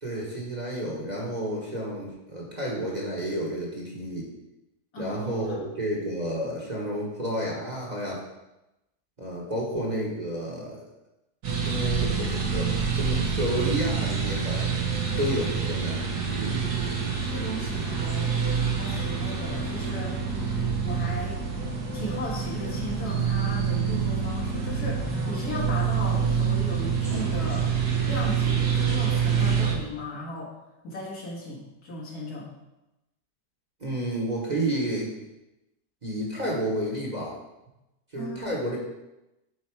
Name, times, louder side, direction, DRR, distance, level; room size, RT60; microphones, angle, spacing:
voice 1, 0.0-4.3 5.0-8.2 9.2-10.8 11.6-14.7 15.2-16.0 16.3-16.6 33.8-35.1 36.0-37.4 38.1-38.8, equal, 30° right, -4 dB, 1.3 m, -31 dB
voice 2, 4.9-5.6 17.2-18.4 18.7-20.2 20.8-21.4 21.9-27.7 28.0-32.5 38.2-38.4, left 1 dB, 70° left, -4 dB, 2.2 m, -36 dB
sound 1, 11.4-29.7, right 6 dB, 70° right, 1.7 m, -27 dB
8.0 x 4.4 x 4.7 m, 0.96 s
omnidirectional pair, 1.7 m